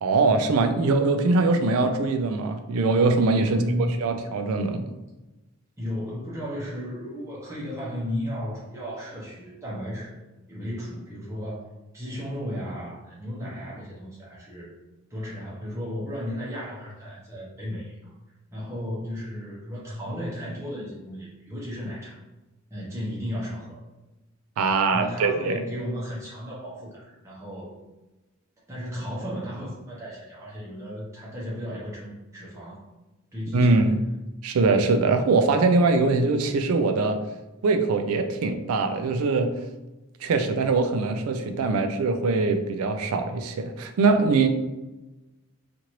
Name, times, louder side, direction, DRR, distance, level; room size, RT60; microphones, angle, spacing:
voice 1, 0.0-3.6 4.0-4.8 24.6-25.6 33.5-34.0 34.4-37.2 37.6-39.5 40.2-44.5, right 3 dB, 80° right, 7 dB, 0.4 m, -22 dB
voice 2, 3.4-4.0 5.8-10.1 10.5-11.6 11.9-14.7 15.1-18.1 18.5-22.1 22.7-23.8 24.9-27.8 28.7-32.8 33.3-33.9, equal, 15° right, -7 dB, 0.8 m, -34 dB
2.8 x 2.5 x 3.0 m, 1.1 s
head